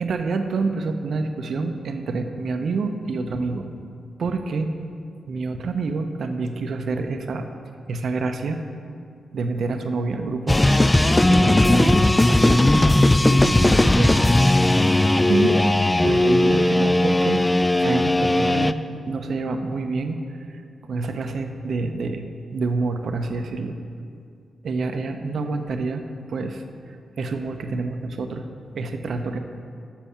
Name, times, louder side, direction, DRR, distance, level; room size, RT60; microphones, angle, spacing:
voice 1, 0.0-3.7 4.2-4.7 5.3-7.5 7.9-8.6 9.3-10.6 11.3-12.7 13.3-14.2 15.3-15.6 16.0-17.4 17.8-18.8 19.1-20.2 20.5-20.6 20.9-22.2 22.5-23.8 24.6-26.0 26.3-28.5 28.7-29.4, right 3 dB, 65° right, 6 dB, 0.6 m, -27 dB
sound 1, 10.5-18.7, left 1 dB, 20° left, 0.3 m, -17 dB
7.3 x 6.1 x 5.6 m, 2.3 s
hypercardioid pair, 40°, 0 cm